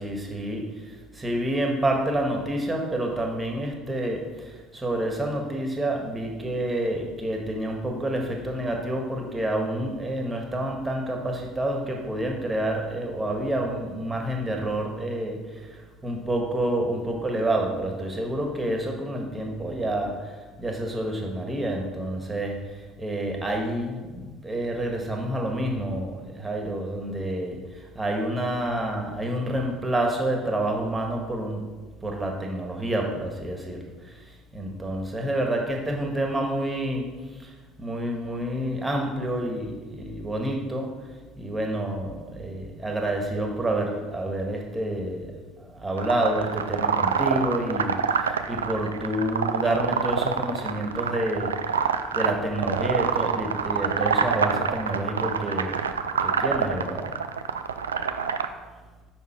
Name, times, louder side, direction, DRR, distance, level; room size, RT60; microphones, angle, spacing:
voice 1, 0.0-15.8 16.0-20.3 20.6-31.6 32.0-34.2 34.5-37.5 37.8-40.9 41.4-45.3 45.6-55.8 56.2-57.1, right 1 dB, 20° right, 1 dB, 1.8 m, -28 dB
sound 1, 46.0-58.5, right 6 dB, 85° right, 0.3 m, -26 dB
7.0 x 5.8 x 4.6 m, 1.3 s
hypercardioid pair, 60°, 0 cm